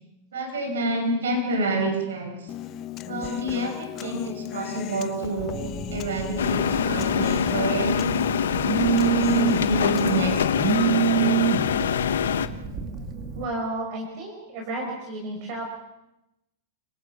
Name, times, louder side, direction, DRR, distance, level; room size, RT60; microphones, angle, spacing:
voice 1, 0.3-2.5 3.1-5.6 5.9-8.0 9.0-11.5, right 2 dB, 90° right, 3 dB, 6.4 m, -28 dB
Human voice, 2.5-10.5, left 13 dB, 35° left, 0.9 m, -37 dB
Telephone, 5.4-13.4, right 9 dB, 35° right, 2.5 m, -28 dB
sound 1, 6.4-12.5, left 8 dB, 90° left, 1.1 m, -24 dB
voice 2, 13.4-15.6, right 2 dB, 50° right, 2 dB, 5.3 m, -32 dB
30.0 x 19.0 x 6.1 m, 0.89 s
hypercardioid pair, 130°, 0 cm